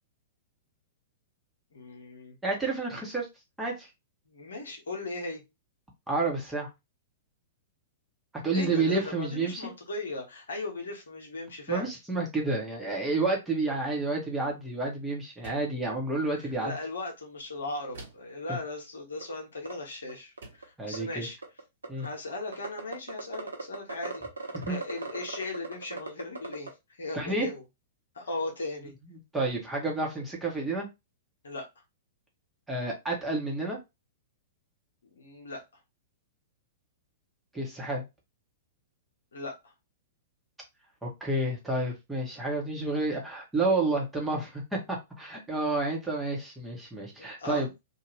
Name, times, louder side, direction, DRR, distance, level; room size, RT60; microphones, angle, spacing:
voice 1, 1.7-2.4 4.3-5.4 8.5-11.9 16.6-21.4 22.0-27.6 28.1-28.9 31.4-31.7 35.0-35.6 39.3-39.7 47.2-47.7, left 2 dB, 70° left, 1.0 m, -38 dB
voice 2, 2.4-3.3 3.6-3.9 6.1-6.7 8.3-9.6 11.7-16.7 18.5-18.6 20.8-21.3 21.9-22.1 24.5-24.8 27.1-27.5 29.3-30.9 32.7-33.8 37.5-38.0 41.0-47.7, right 2 dB, 5° right, 1.1 m, -30 dB
sound 1, 15.4-15.9 17.9-18.4 19.7-19.9 20.4-20.8, right 2 dB, 60° right, 1.2 m, -47 dB
sound 2, 19.2-19.3 19.6-19.7 20.1-20.2 20.4-21.0 21.4-22.0 22.5-26.7, right 4 dB, 75° right, 0.7 m, -37 dB
2.7 x 2.4 x 3.2 m
figure-of-eight pair, 105°, 0 cm